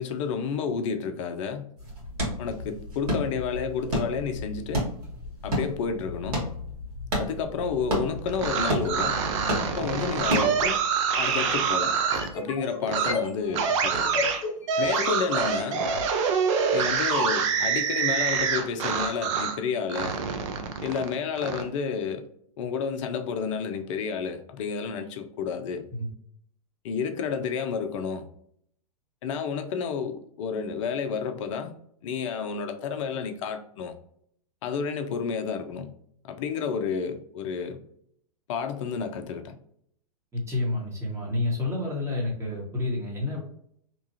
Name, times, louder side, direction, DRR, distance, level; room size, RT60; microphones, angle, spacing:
voice 1, 0.0-1.7 2.4-4.8 5.4-6.5 7.2-9.2 9.6-10.8 11.2-12.0 12.3-14.2 14.8-15.9 16.7-20.2 20.8-22.3 22.6-25.9 26.8-28.3 29.2-31.7 32.0-33.9 34.6-35.9 36.2-37.8 38.5-39.6, left 6 dB, 50° left, 0.5 m, -30 dB
sound 1, 1.8-10.8, equal, 75° right, 1.4 m, -32 dB
sound 2, 8.3-12.3 12.9-13.1 13.5-19.6 19.9-21.6, right 6 dB, 50° right, 0.6 m, -26 dB
sound 3, 11.9-15.9, left 3 dB, 15° left, 1.1 m, -34 dB
voice 2, 40.3-43.4, left 2 dB, 15° right, 1.2 m, -29 dB
2.9 x 2.4 x 2.7 m
hypercardioid pair, 115°, 20 cm